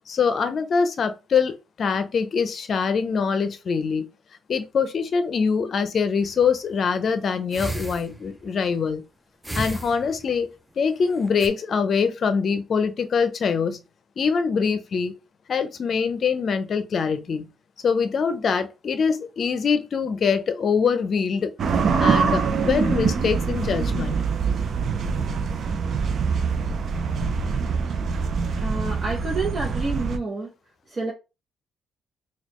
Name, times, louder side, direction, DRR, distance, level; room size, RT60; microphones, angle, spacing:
voice 1, 0.1-4.0 4.5-9.0 9.5-10.5 10.8-13.8 14.2-15.1 15.5-17.5 17.8-21.5 22.0-24.2, left 5 dB, 50° left, 0.6 m, -24 dB
sound 1, 6.2-6.6 7.5-8.5 9.4-10.4 11.1-11.5, right 2 dB, 10° right, 0.6 m, -33 dB
sound 2, 21.6-30.2, right 5 dB, 60° right, 0.5 m, -24 dB
voice 2, 28.6-30.5 30.9-31.1, right 3 dB, 40° right, 0.9 m, -29 dB
4.1 x 2.4 x 3.0 m
cardioid pair, 90°, 0 cm